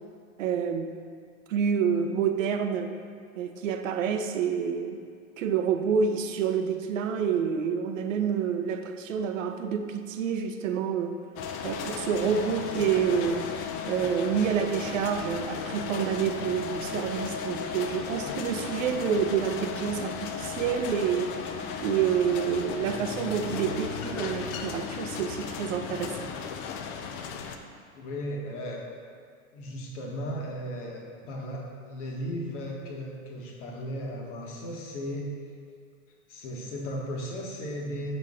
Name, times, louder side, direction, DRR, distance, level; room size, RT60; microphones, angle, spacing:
voice 1, 0.4-1.0 1.5-3.0 3.4-5.0 5.4-11.2 11.6-13.5 13.9-26.3, right 7 dB, 70° right, 7 dB, 0.6 m, -28 dB
sound 1, 11.4-27.6, left 6 dB, 35° left, 0.4 m, -35 dB
voice 2, 27.9-28.8 29.5-35.3 36.3-38.1, equal, 60° left, -1 dB, 1.3 m, -36 dB
5.8 x 4.4 x 3.6 m, 2.2 s
hypercardioid pair, 95°, 40 cm